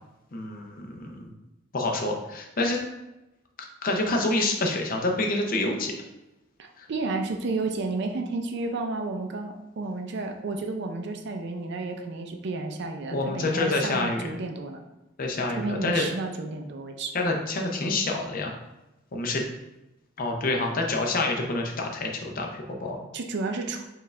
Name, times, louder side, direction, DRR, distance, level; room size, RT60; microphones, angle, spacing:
voice 1, 0.3-1.3 1.7-2.9 3.8-5.9 6.8-6.9 13.1-14.3 15.2-16.1 17.1-18.5 19.1-19.4 20.2-23.0, left 2 dB, 45° left, 1 dB, 0.6 m, -27 dB
voice 2, 6.6-14.8 15.6-17.2 23.1-23.9, right 3 dB, 60° right, 5 dB, 0.4 m, -32 dB
4.6 x 2.4 x 3.2 m, 0.96 s
head